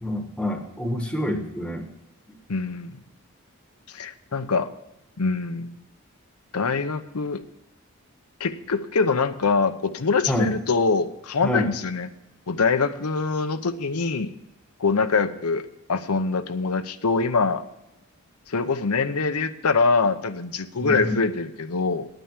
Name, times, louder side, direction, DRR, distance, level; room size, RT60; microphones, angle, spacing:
voice 1, 0.0-1.9 10.3-10.5 11.4-11.7 20.8-21.2, left 1 dB, 5° left, 5 dB, 1.1 m, -27 dB
voice 2, 2.5-3.0 3.9-4.7 5.2-5.7 6.5-7.4 8.4-12.1 12.5-14.3 14.8-17.6 18.5-22.1, left 4 dB, 90° left, 10 dB, 0.8 m, -24 dB
9.8 x 9.1 x 7.3 m, 0.91 s
head